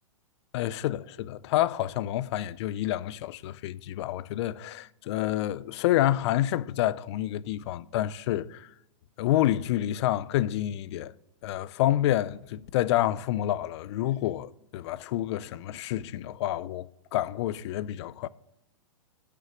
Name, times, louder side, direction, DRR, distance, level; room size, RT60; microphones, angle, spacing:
voice 1, 0.5-8.7 9.2-11.1 11.4-18.3, left 13 dB, 55° left, 0.4 m, -28 dB
6.7 x 6.3 x 6.8 m
hypercardioid pair, 125°, 18 cm